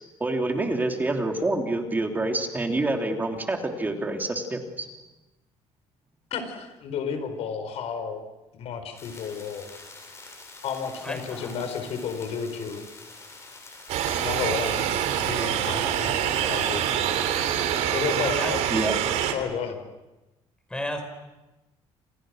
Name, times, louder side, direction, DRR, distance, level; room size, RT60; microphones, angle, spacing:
voice 1, 0.2-4.9 18.7-19.0, right 2 dB, 15° right, 3 dB, 3.1 m, -27 dB
voice 2, 6.3-8.2 8.5-9.7 10.6-12.8 14.0-14.9 15.2-17.0 17.9-18.6 19.2-19.8, left 6 dB, 65° left, 8 dB, 4.8 m, -32 dB
sound 1, 9.0-17.8, left 3 dB, 25° left, 7.2 m, -46 dB
voice 3, 11.0-11.5 18.2-18.5 20.7-21.0, left 1 dB, 10° left, 5 dB, 5.6 m, -32 dB
sound 2, 13.9-19.3, right 10 dB, 85° right, 3.2 m, -25 dB
29.0 x 28.0 x 6.4 m, 1.0 s
cardioid pair, 140°, 11 cm